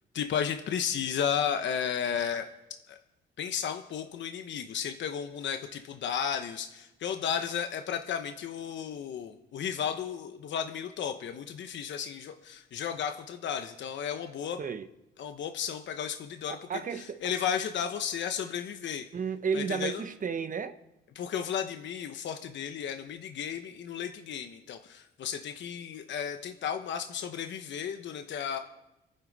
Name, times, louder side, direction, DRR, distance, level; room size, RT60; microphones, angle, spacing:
voice 1, 0.1-2.5 2.9-3.0 3.4-14.6 15.2-19.0 19.5-20.0 21.1-28.6, left 8 dB, 65° left, 1.0 m, -33 dB
voice 2, 16.5-17.2 19.1-20.7, right 6 dB, 40° right, 0.9 m, -32 dB
27.0 x 10.0 x 4.1 m
cardioid pair, 90°, 20 cm